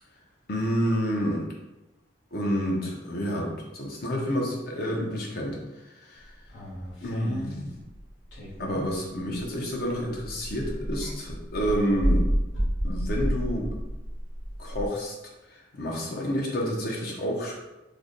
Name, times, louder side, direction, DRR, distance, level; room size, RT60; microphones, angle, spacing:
voice 1, 0.5-1.4 2.3-5.6 6.0-6.2 7.0-7.7 8.6-12.3 12.8-13.7 14.6-15.1 15.5-17.5, equal, 55° left, -1 dB, 0.8 m, -29 dB
sound 1, 6.5-9.5 9.9-14.9, equal, 80° left, 1.2 m, -30 dB
3.3 x 2.2 x 3.8 m, 1.0 s
head